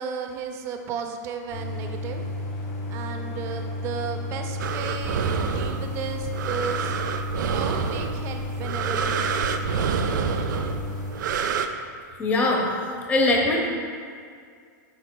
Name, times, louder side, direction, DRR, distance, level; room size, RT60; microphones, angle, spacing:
voice 1, 0.0-2.2 2.9-6.9 7.4-9.4, right 6 dB, 25° right, 5 dB, 0.5 m, -34 dB
Idling, 1.5-11.1, left 2 dB, 45° left, 1.6 m, -32 dB
sound 1, 4.6-11.7, right 6 dB, 80° right, 0.4 m, -28 dB
voice 2, 12.2-12.7 13.1-13.7, left 2 dB, 15° left, 0 dB, 0.8 m, -21 dB
8.9 x 5.6 x 2.2 m, 2.2 s
supercardioid pair, 160°, 10 cm